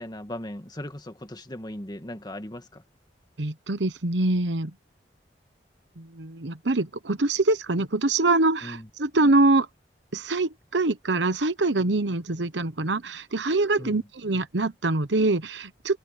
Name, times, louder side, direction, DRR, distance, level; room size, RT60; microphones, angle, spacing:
voice 1, 0.0-2.8 8.6-8.9 13.8-14.0, left 1 dB, 25° left, 1.8 m, -38 dB
voice 2, 3.4-4.7 6.0-9.7 10.1-16.0, right 2 dB, 90° right, 1.1 m, -24 dB
open air
head